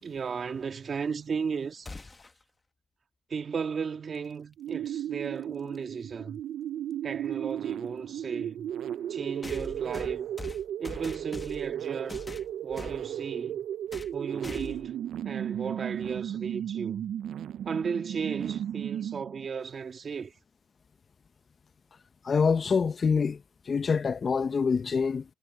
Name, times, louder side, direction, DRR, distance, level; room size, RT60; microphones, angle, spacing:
voice 1, 0.0-1.9 3.3-6.4 7.0-8.7 9.1-10.3 10.8-12.3 12.6-13.6 14.1-17.1 17.7-20.3, right 6 dB, 45° right, 1.9 m, -35 dB
sound 1, 1.9-2.4 4.5-4.6 5.7-5.8 9.4-11.7 12.1-13.0 13.9-14.2 14.4-14.9, left 3 dB, 25° left, 1.3 m, -42 dB
sound 2, 4.6-19.4, right 10 dB, 70° right, 0.4 m, -35 dB
voice 2, 22.2-23.4 23.7-25.2, left 5 dB, 40° left, 0.7 m, -25 dB
cardioid pair, 90°, 0 cm